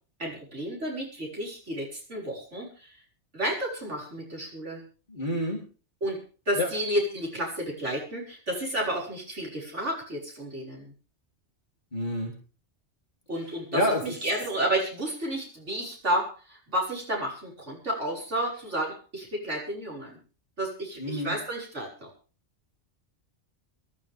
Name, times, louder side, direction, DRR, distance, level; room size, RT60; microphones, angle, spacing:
voice 1, 0.2-3.0 3.3-4.8 6.0-6.2 6.5-10.9 13.3-20.2 20.6-22.1, right 1 dB, 75° right, -3 dB, 6.2 m, -31 dB
voice 2, 5.1-5.6 6.6-6.7 11.9-12.3 13.7-14.1 21.0-21.3, equal, 40° left, -1 dB, 3.7 m, -28 dB
23.0 x 13.0 x 3.6 m, 0.37 s
omnidirectional pair, 1.2 m